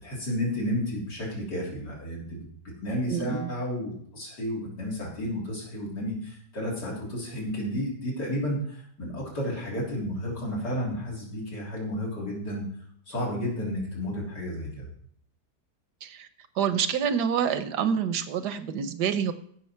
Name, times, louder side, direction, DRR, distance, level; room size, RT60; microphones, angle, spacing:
voice 1, 0.0-2.5 2.8-12.6 13.1-14.9, equal, 80° left, -4 dB, 4.0 m, -32 dB
voice 2, 3.1-3.5 16.0-16.3 16.6-19.3, right 7 dB, 75° right, 11 dB, 1.3 m, -27 dB
15.0 x 6.3 x 4.5 m, 0.65 s
omnidirectional pair, 1.8 m